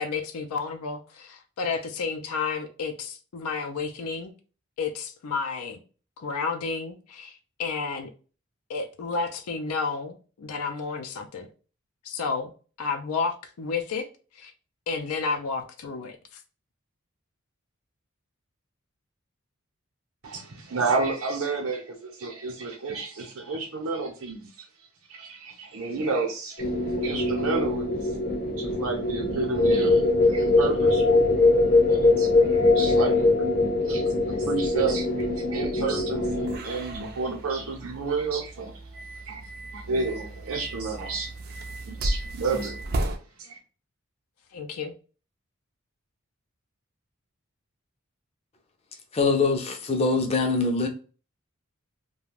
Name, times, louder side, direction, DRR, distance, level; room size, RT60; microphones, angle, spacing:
voice 1, 0.0-4.3 4.8-5.8 6.2-8.1 8.7-11.5 12.0-12.5 12.8-14.1 14.3-14.5 14.9-16.4 44.5-44.9, left 4 dB, 90° left, 0.4 m, -31 dB
voice 2, 20.2-24.7 25.1-26.7 27.0-28.0 28.6-39.4 39.7-41.3 41.9-43.0 43.4-43.6, right 4 dB, 75° right, 0.7 m, -31 dB
sound 1, 26.6-36.6, left 2 dB, 50° left, 0.9 m, -22 dB
sound 2, 36.4-43.2, right 1 dB, 45° right, 0.4 m, -35 dB
voice 3, 49.1-50.9, left 3 dB, 30° left, 0.5 m, -23 dB
2.4 x 2.2 x 3.2 m
head